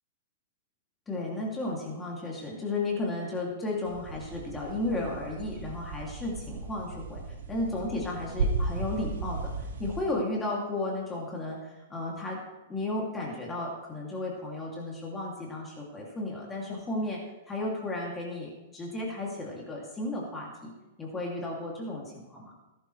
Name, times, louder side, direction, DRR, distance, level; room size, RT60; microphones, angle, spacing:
voice 1, 1.1-7.2 7.5-12.4 12.7-17.2 17.5-20.7 21.0-22.5, left 2 dB, 15° left, -2 dB, 2.8 m, -34 dB
sound 1, 3.8-10.1, right 3 dB, 80° right, 4.2 m, -35 dB
19.0 x 11.5 x 3.3 m, 1.1 s
hypercardioid pair, 150°, 0 cm